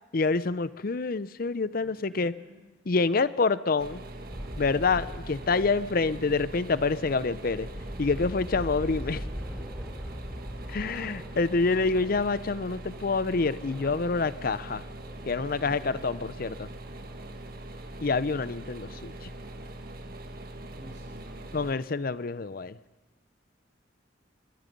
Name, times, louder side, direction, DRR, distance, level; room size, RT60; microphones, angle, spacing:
voice 1, 0.1-2.3 2.9-4.0 4.6-7.7 8.0-9.2 10.7-14.8 15.3-16.7 18.0-19.3 21.5-22.7, left 4 dB, 50° left, 16 dB, 0.6 m, -27 dB
voice 2, 1.8-2.6 15.6-16.0 20.7-21.5, equal, 80° right, -4 dB, 5.7 m, -50 dB
sound 1, 3.8-21.7, right 1 dB, 50° right, 1.5 m, -42 dB
sound 2, 4.3-17.9 18.2-18.3 18.8-19.6, equal, ahead, 1.5 m, -43 dB
22.5 x 21.5 x 5.4 m, 1.1 s
head